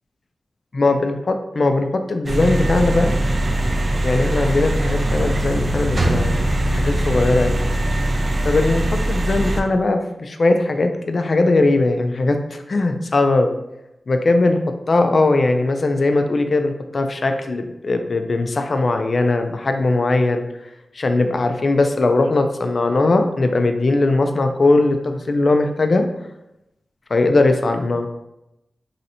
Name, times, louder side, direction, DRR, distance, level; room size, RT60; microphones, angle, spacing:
voice 1, 0.7-3.1 4.0-6.4 6.7-7.6 8.4-13.5 14.1-14.6 14.9-20.4 20.9-26.1 27.1-28.1, left 2 dB, 55° left, 6 dB, 0.3 m, -19 dB
sound 1, 2.3-9.6, right 1 dB, 50° right, 0.3 m, -21 dB
3.1 x 2.6 x 2.8 m, 0.89 s
wide cardioid pair, 80°, 0 cm